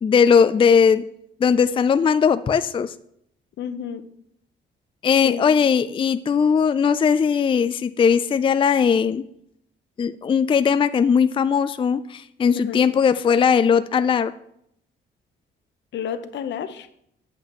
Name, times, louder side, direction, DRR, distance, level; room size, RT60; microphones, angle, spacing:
voice 1, 0.0-1.0 1.4-2.9 5.0-9.3 10.0-14.3, left 6 dB, 25° left, 12 dB, 0.4 m, -19 dB
voice 2, 3.6-4.1 5.2-5.5 12.5-12.9 15.9-16.9, left 8 dB, 65° left, 10 dB, 0.8 m, -30 dB
8.0 x 7.8 x 3.0 m, 0.71 s
cardioid pair, 90°, 20 cm